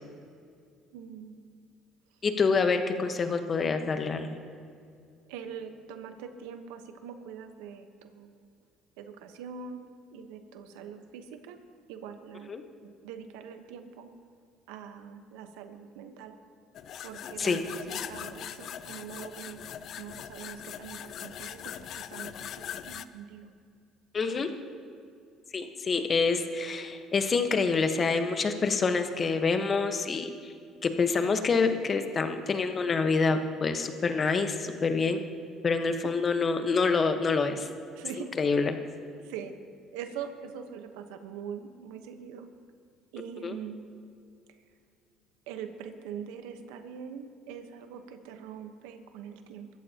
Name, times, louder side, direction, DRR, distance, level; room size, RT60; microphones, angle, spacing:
voice 1, 0.9-1.4 5.3-8.5 9.0-9.8 10.1-11.6 11.9-12.5 12.8-14.1 14.7-16.4 17.0-23.5 24.3-24.5 36.0-36.1 37.9-38.3 39.2-39.5 39.9-42.5 43.1-43.8 45.5-49.7, right 7 dB, 90° right, 7 dB, 1.1 m, -43 dB
voice 2, 2.2-4.4 12.5-12.6 17.4-17.6 24.1-24.5 25.5-30.5 30.8-35.2 35.6-37.7 38.4-38.8 43.4-43.6, left 4 dB, 35° left, 7 dB, 1.3 m, -27 dB
sound 1, 16.7-23.0, left 10 dB, 60° left, 0.5 m, -41 dB
23.0 x 14.0 x 3.0 m, 2.4 s
supercardioid pair, 90°, 0 cm